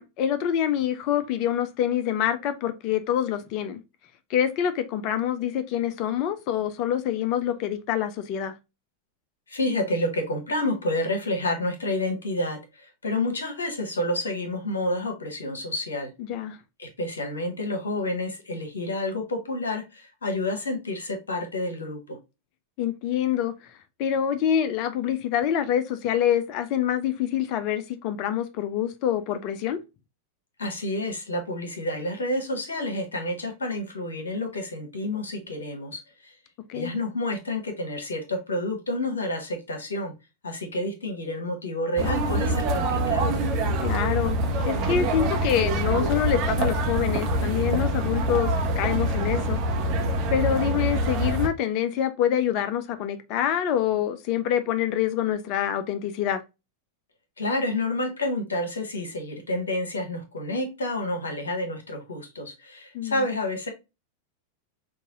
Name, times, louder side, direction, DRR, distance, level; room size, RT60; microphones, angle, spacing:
voice 1, 0.0-3.8 4.3-8.5 16.2-16.6 22.8-23.5 24.0-29.8 36.7-36.9 43.8-44.4 44.7-49.6 50.3-56.4 62.9-63.3, left 10 dB, 40° left, 0.5 m, -26 dB
voice 2, 9.5-16.1 16.8-22.2 30.6-36.3 36.7-40.1 40.4-43.4 57.4-63.7, left 1 dB, 70° left, 1.2 m, -29 dB
sound 1, 42.0-51.5, right 1 dB, 40° right, 0.9 m, -25 dB
5.4 x 2.6 x 2.6 m
figure-of-eight pair, 90°, 0 cm